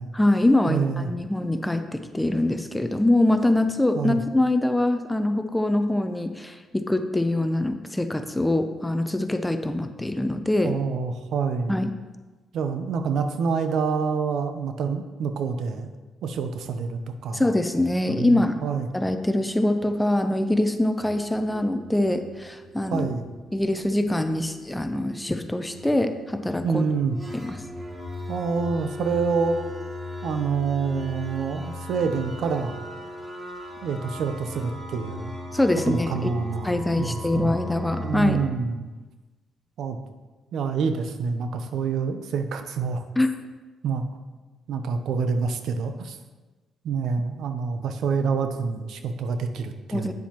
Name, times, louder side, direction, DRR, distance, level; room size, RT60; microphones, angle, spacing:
voice 1, 0.1-10.8 11.7-12.0 17.3-18.6 18.9-23.1 23.5-26.8 27.3-27.6 35.5-36.3 36.6-38.4 43.2-43.3 49.9-50.1, left 1 dB, 10° left, 8 dB, 0.6 m, -24 dB
voice 2, 0.7-1.1 3.9-4.2 10.6-11.8 12.5-15.9 16.2-17.4 18.1-18.9 22.9-23.3 26.6-27.2 28.3-29.6 30.2-32.8 33.8-35.3 35.9-37.6 38.0-38.9 39.8-40.0 40.5-43.0 43.8-44.1 44.7-46.2 46.8-50.1, right 5 dB, 75° right, 8 dB, 0.7 m, -27 dB
sound 1, 19.8-20.2 20.7-38.5, left 1 dB, 20° right, 1.2 m, -38 dB
9.4 x 7.1 x 3.0 m, 1.2 s
cardioid pair, 90°, 0 cm